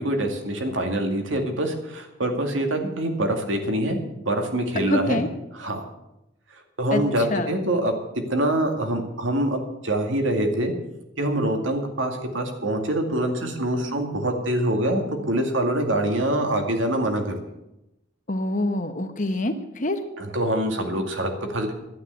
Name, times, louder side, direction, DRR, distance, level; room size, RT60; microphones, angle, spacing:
voice 1, 0.0-5.2 5.6-5.9 6.8-7.9 8.3-10.7 11.2-17.4 20.2-21.7, right 1 dB, 90° right, 4 dB, 2.2 m, -25 dB
voice 2, 4.9-5.3 6.9-7.0 7.3-7.5 18.3-20.0, left 1 dB, 40° left, 8 dB, 1.1 m, -25 dB
12.0 x 9.4 x 8.1 m, 0.91 s
head